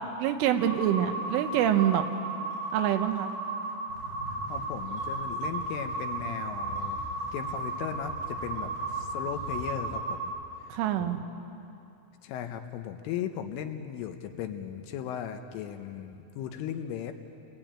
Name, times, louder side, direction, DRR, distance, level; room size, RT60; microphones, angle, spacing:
voice 1, 0.0-2.1 2.7-3.3 10.7-11.2, right 10 dB, 80° right, 6 dB, 3.7 m, -26 dB
sound 1, 0.6-10.2, right 3 dB, 60° right, 9.6 m, -35 dB
sound 2, 3.9-9.7, left 1 dB, 15° left, 7.4 m, -44 dB
voice 2, 4.3-7.0 7.3-10.3 11.0-11.1 12.2-17.1, left 9 dB, 80° left, 6 dB, 3.6 m, -37 dB
29.0 x 20.5 x 8.9 m, 2.7 s
omnidirectional pair, 5.7 m